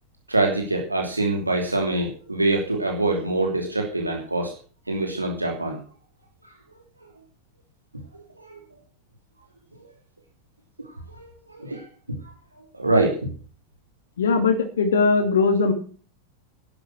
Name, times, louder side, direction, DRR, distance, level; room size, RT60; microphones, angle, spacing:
voice 1, 0.3-4.5 4.9-5.8 6.7-6.8 8.4-8.6 11.1-12.2 12.7-13.3, right 2 dB, 85° right, 1 dB, 3.0 m, -25 dB
voice 2, 14.2-15.7, left 4 dB, 65° left, 8 dB, 2.6 m, -20 dB
12.0 x 11.5 x 6.3 m, 0.41 s
figure-of-eight pair, 90°, 0 cm